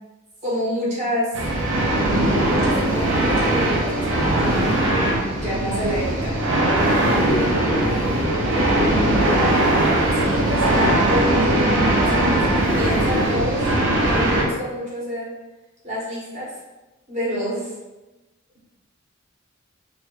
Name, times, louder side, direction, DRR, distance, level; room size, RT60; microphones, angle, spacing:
voice 1, 0.4-1.3 2.5-6.3 10.1-12.5 12.8-13.7 14.1-15.3 15.8-16.6 17.1-17.7, equal, 35° right, -7 dB, 1.1 m, -28 dB
sound 1, 1.3-14.5, right 1 dB, 65° right, 0.6 m, -20 dB
voice 2, 5.3-5.6 7.2-9.5, left 2 dB, 75° left, 6 dB, 0.4 m, -30 dB
3.0 x 2.3 x 3.0 m, 1.1 s
head